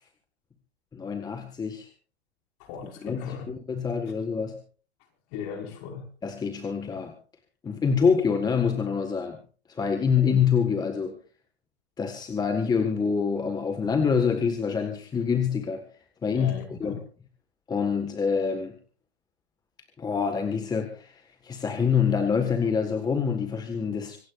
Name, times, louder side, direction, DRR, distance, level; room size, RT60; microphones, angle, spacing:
voice 1, 0.9-1.9 3.0-4.6 6.2-7.1 7.6-9.4 9.7-11.2 12.0-15.8 16.2-17.0 17.7-18.7 20.0-24.2, left 6 dB, 10° left, 6 dB, 1.6 m, -26 dB
voice 2, 2.7-3.5 5.3-6.1 16.3-17.0, left 7 dB, 40° left, 3 dB, 5.4 m, -38 dB
26.0 x 16.0 x 2.5 m, 0.37 s
hypercardioid pair, 130°, 32 cm